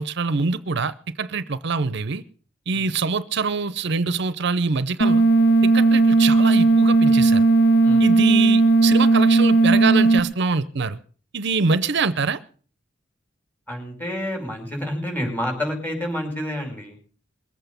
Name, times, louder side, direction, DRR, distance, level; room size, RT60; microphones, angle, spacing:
voice 1, 0.0-2.2 2.7-5.2 5.6-7.5 8.0-11.0 11.3-12.4, right 4 dB, 60° right, 15 dB, 0.7 m, -24 dB
sound 1, 5.0-10.2, right 3 dB, 55° left, 0.8 m, -16 dB
voice 2, 13.7-17.0, left 1 dB, 10° left, 2 dB, 5.5 m, -29 dB
22.0 x 8.1 x 6.8 m, 0.42 s
head